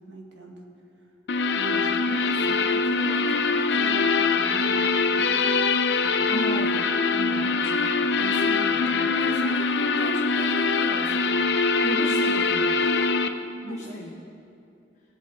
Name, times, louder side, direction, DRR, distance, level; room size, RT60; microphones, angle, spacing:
voice 1, 0.1-0.5 1.5-4.8 5.1-5.5 7.1-11.2 12.8-13.1 13.6-14.0, right 1 dB, 85° right, 0 dB, 1.8 m, -39 dB
sound 1, 1.3-13.3, left 4 dB, 70° left, 0.5 m, -23 dB
voice 2, 1.7-2.5 6.0-6.9 11.7-12.8 13.6-14.1, left 1 dB, 40° left, -2 dB, 1.0 m, -35 dB
18.0 x 8.1 x 3.8 m, 2.5 s
head